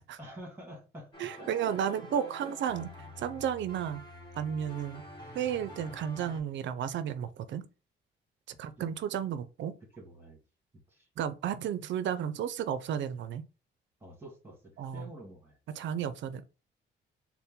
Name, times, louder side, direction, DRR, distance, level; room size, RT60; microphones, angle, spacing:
voice 1, 0.2-1.1 1.4-2.7 8.8-8.9 10.0-10.4 10.9-11.1 14.0-15.6, right 1 dB, 10° right, 1.8 m, -48 dB
sound 1, 1.1-6.4, left 1 dB, 25° left, 1.6 m, -47 dB
voice 2, 1.2-2.9 3.2-4.0 4.4-5.0 5.3-7.6 8.6-9.7 11.2-13.4 14.8-15.1 15.8-16.5, right 9 dB, 70° right, 0.5 m, -33 dB
4.1 x 2.1 x 3.6 m
cardioid pair, 90°, 20 cm